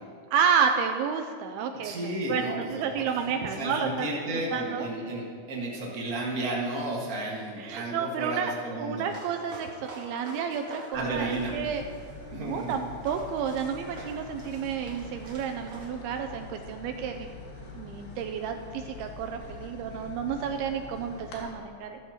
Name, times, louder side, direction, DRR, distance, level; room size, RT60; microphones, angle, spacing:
voice 1, 0.3-4.2 4.5-4.9 7.6-11.8 12.3-17.3 17.7-22.0, right 7 dB, 80° right, 4 dB, 2.4 m, -30 dB
voice 2, 1.8-3.0 3.5-9.0 10.9-11.5 12.3-12.9, right 1 dB, 65° right, -4 dB, 0.8 m, -33 dB
sound 1, 9.0-15.9, right 2 dB, 45° right, 1.7 m, -47 dB
sound 2, 10.9-21.4, left 3 dB, 75° left, 3.5 m, -44 dB
15.0 x 13.5 x 2.9 m, 2.2 s
omnidirectional pair, 4.6 m